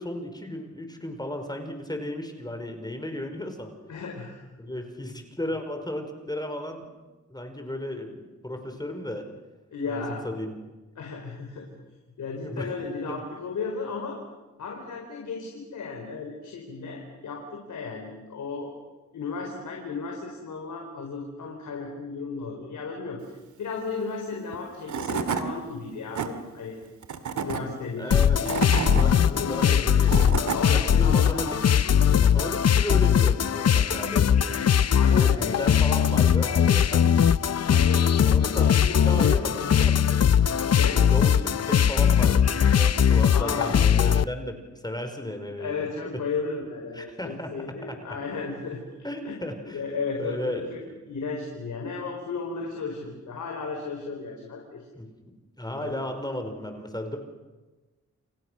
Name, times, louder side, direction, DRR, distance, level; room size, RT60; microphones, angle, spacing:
voice 1, 0.0-3.7 4.6-6.9 7.3-9.3 9.9-10.5 12.4-12.7 13.1-13.2 28.0-28.5 28.8-30.3 30.7-31.6 32.2-34.6 35.1-37.1 38.2-40.3 40.9-45.9 46.1-46.2 46.9-47.5 47.8-48.0 49.0-49.8 50.2-50.9 54.9-55.1 55.6-57.2, left 1 dB, 15° left, 6 dB, 5.2 m, -34 dB
voice 2, 3.9-4.4 9.7-10.2 11.0-11.7 12.2-14.2 14.6-18.7 19.1-26.8 27.3-28.2 28.7-29.9 30.5-31.5 32.1-32.2 34.9-35.3 37.6-38.1 38.3-39.7 40.7-41.1 43.3-43.7 45.6-48.8 49.2-50.8 51.1-54.9 55.7-55.9, left 4 dB, 85° left, 1 dB, 4.7 m, -34 dB
Tools / Wood, 24.5-24.6 24.9-25.4 25.9-26.3 27.0-27.6 28.2-29.0 29.8-30.6, right 7 dB, 80° right, 2.3 m, -29 dB
sound 1, 28.1-44.2, left 8 dB, 60° left, 0.8 m, -20 dB
29.5 x 29.0 x 6.5 m, 1.2 s
cardioid pair, 65°, 29 cm